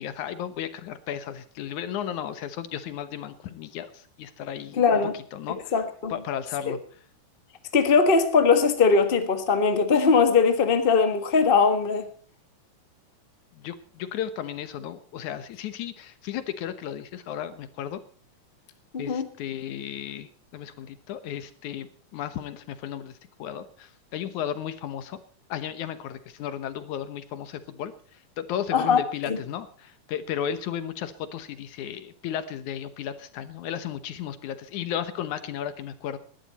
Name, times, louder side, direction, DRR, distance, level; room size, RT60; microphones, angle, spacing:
voice 1, 0.0-4.8 5.1-5.7 6.1-6.8 13.6-18.0 19.0-25.2 25.5-27.9 28.4-36.2, left 9 dB, 70° left, 2.5 m, -34 dB
voice 2, 4.8-5.2 5.7-6.1 6.7-6.8 7.7-12.1 18.9-19.3 28.7-29.0 29.3-29.4, left 5 dB, 35° left, 0.8 m, -20 dB
19.5 x 12.5 x 4.3 m
omnidirectional pair, 3.7 m